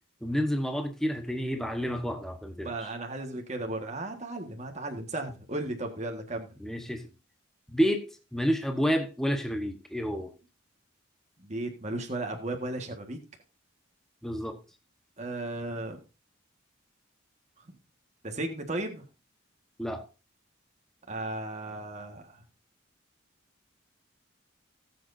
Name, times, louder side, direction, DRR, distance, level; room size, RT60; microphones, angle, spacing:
voice 1, 0.2-2.9 6.6-7.0 7.7-10.3 14.2-14.6 19.8-20.0, equal, ahead, 1.1 m, -29 dB
voice 2, 2.6-6.5 11.4-13.2 15.2-16.0 17.7-17.8 18.2-19.0 21.1-22.4, right 2 dB, 35° right, 1.6 m, -35 dB
18.5 x 7.8 x 2.6 m
head